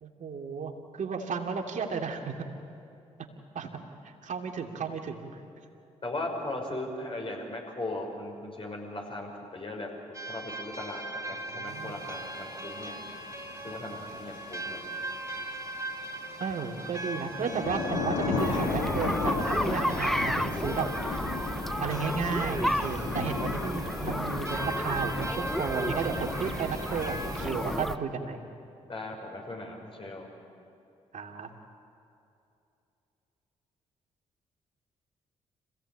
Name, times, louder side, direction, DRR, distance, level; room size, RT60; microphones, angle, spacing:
voice 1, 0.0-2.5 3.5-3.7 4.0-5.3 11.4-12.0 16.4-21.2 21.8-28.4 31.1-31.5, right 5 dB, 60° right, 2 dB, 2.6 m, -33 dB
voice 2, 6.0-9.9 10.3-13.0 13.6-14.8 28.9-30.3, left 2 dB, 40° left, 1 dB, 6.0 m, -38 dB
sound 1, 10.1-27.5, right 2 dB, 20° right, 3.0 m, -40 dB
sound 2, 11.7-27.8, left 4 dB, 90° left, 1.9 m, -36 dB
sound 3, 18.4-28.0, equal, ahead, 0.8 m, -32 dB
26.0 x 16.5 x 8.8 m, 2.7 s
hypercardioid pair, 45°, 15 cm